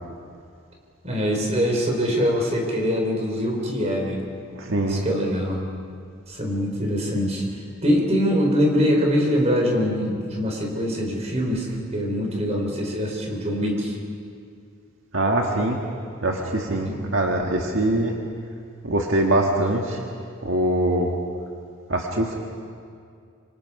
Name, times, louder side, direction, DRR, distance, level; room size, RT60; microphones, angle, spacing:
voice 1, 1.0-4.3 4.8-5.7 6.3-7.4 7.8-11.7 11.9-14.0 16.7-17.1 17.6-17.7, equal, 35° right, 0 dB, 4.2 m, -23 dB
voice 2, 4.5-5.0 15.1-15.8 16.2-18.1 18.8-20.0 20.4-21.1 21.9-22.4, right 1 dB, 75° right, 1 dB, 1.7 m, -23 dB
25.5 x 25.5 x 4.9 m, 2.3 s
head